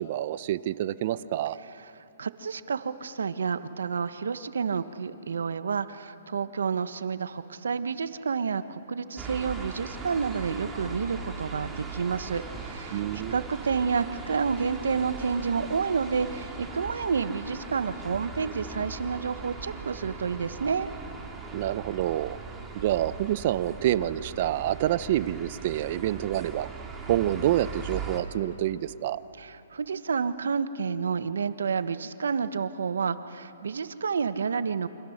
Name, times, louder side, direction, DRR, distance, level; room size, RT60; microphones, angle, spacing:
voice 1, 0.0-1.6 12.9-13.4 21.5-22.4 22.7-26.7 27.1-29.2, right 13 dB, 45° right, 15 dB, 0.8 m, -27 dB
voice 2, 2.2-20.9 29.4-34.9, right 5 dB, 80° right, 12 dB, 1.2 m, -30 dB
sound 1, 9.2-28.2, right 4 dB, 10° right, 2.7 m, -40 dB
29.0 x 26.0 x 6.6 m, 3.0 s
hypercardioid pair, 145°, 0 cm